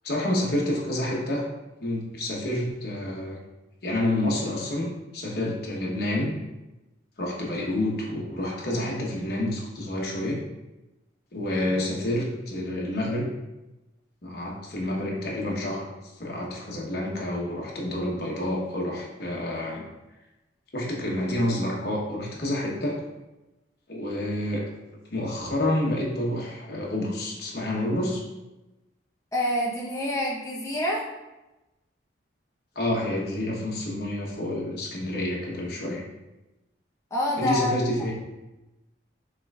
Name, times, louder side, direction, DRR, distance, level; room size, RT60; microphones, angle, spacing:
voice 1, 0.0-1.4 1.8-3.4 3.8-6.3 7.2-10.4 11.3-13.3 14.2-15.9 16.2-19.8 20.7-23.0 23.9-24.6 25.1-28.2 32.7-36.0 37.4-38.1, left 1 dB, 55° left, -3 dB, 1.0 m, -28 dB
voice 2, 29.3-31.0 37.1-37.8, left 1 dB, 15° left, -4 dB, 0.7 m, -26 dB
6.0 x 3.2 x 2.3 m, 1.0 s
head